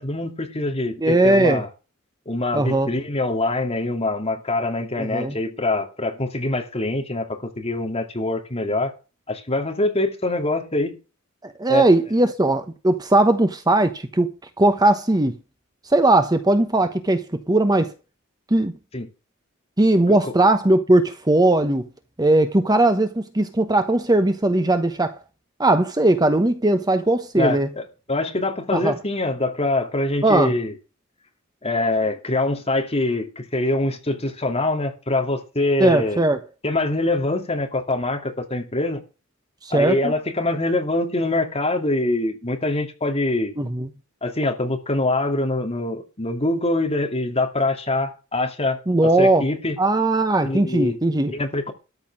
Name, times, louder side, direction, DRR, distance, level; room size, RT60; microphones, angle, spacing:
voice 1, 0.0-1.7 2.3-8.9 9.3-11.0 11.7-11.8 18.9-19.1 20.1-20.3 27.3-30.7 31.6-36.2 36.6-39.0 39.7-43.5 44.2-49.8 50.4-51.0 51.3-51.7, left 2 dB, 30° left, 2.6 m, -24 dB
voice 2, 1.0-1.6 2.5-2.9 5.0-5.3 11.4-14.3 14.6-15.4 15.9-17.9 18.5-18.7 19.8-21.9 22.2-25.2 25.6-27.7 28.7-28.9 30.2-30.5 35.8-36.4 39.6-40.1 43.6-43.9 48.9-49.4 49.8-51.3, right 2 dB, 20° right, 1.0 m, -19 dB
13.5 x 6.0 x 7.3 m
head